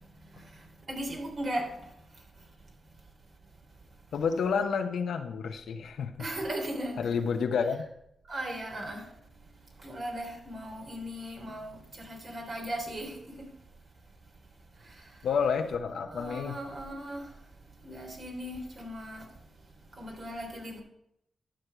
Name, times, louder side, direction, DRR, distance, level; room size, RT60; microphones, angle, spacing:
voice 1, 0.9-1.8 6.2-7.1 8.3-9.1 9.8-13.5 14.8-15.0 16.1-17.3 17.8-19.3 20.0-20.8, right 1 dB, 60° right, 3.5 m, -37 dB
voice 2, 4.1-6.2 7.0-7.8 15.2-16.6, left 6 dB, 85° left, 0.9 m, -29 dB
12.0 x 6.5 x 4.6 m
cardioid pair, 60°, 0 cm